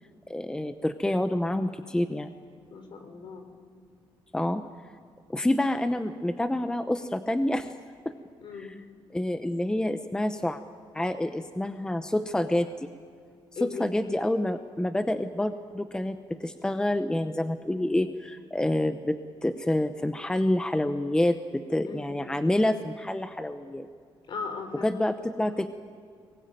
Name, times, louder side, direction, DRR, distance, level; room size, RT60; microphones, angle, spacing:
voice 1, 0.3-2.3 4.3-4.6 5.3-7.7 8.0-8.1 9.1-10.6 10.9-12.9 13.6-23.9 24.8-25.7, left 1 dB, 10° left, 9 dB, 0.8 m, -28 dB
voice 2, 2.7-3.5 8.4-8.7 13.6-13.9 21.8-22.4 24.3-24.9, left 5 dB, 55° left, 7 dB, 3.8 m, -38 dB
23.0 x 20.0 x 9.1 m, 2.2 s
cardioid pair, 120°, 10 cm